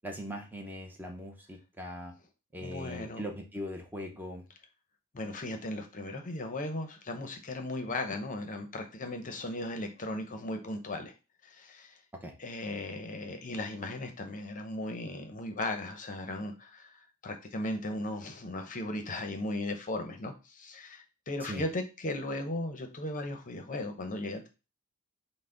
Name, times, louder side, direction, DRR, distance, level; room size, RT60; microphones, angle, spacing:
voice 1, 0.0-2.1 2.5-4.4 12.2-12.3 21.5-21.6, equal, 10° right, 1 dB, 0.6 m, -40 dB
voice 2, 2.6-3.2 5.1-11.1 11.4-12.0 12.4-24.5, left 1 dB, 35° left, 6 dB, 0.7 m, -37 dB
5.6 x 2.1 x 3.8 m, 0.30 s
head